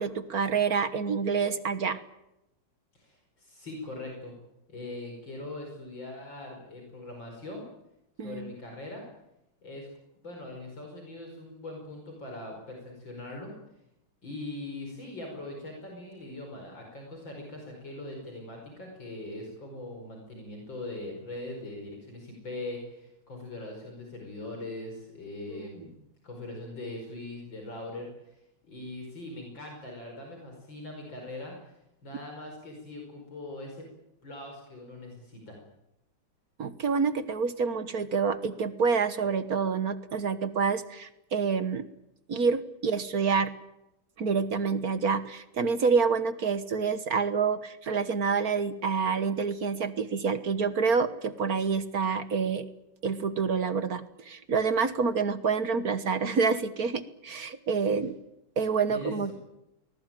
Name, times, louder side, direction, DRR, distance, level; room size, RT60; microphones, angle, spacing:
voice 1, 0.0-2.0 8.2-8.5 25.5-25.7 36.6-41.8 42.3-43.5 44.2-52.7 53.0-58.1 58.6-59.3, right 5 dB, 50° right, 12 dB, 1.6 m, -27 dB
voice 2, 2.9-4.3 4.7-7.7 8.2-9.0 9.6-9.9 10.2-13.5 14.2-25.9 26.2-31.8 32.0-33.9 34.2-35.6 58.9-59.3, left 2 dB, 65° left, 1 dB, 5.8 m, -41 dB
24.0 x 20.5 x 9.1 m, 0.87 s
omnidirectional pair, 2.2 m